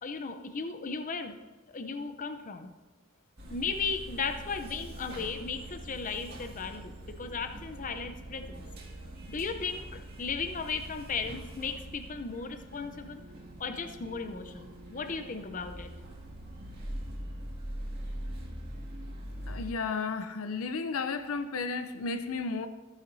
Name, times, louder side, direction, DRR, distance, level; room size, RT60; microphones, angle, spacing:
voice 1, 0.0-1.3 1.7-2.7 3.5-8.5 9.3-13.2 13.6-15.9, left 5 dB, 40° left, 0.7 m, -36 dB
sound 1, 3.4-19.7, right 1 dB, 50° right, 1.9 m, -43 dB
voice 2, 19.5-22.7, left 4 dB, 80° left, 0.6 m, -33 dB
14.5 x 9.2 x 2.7 m
head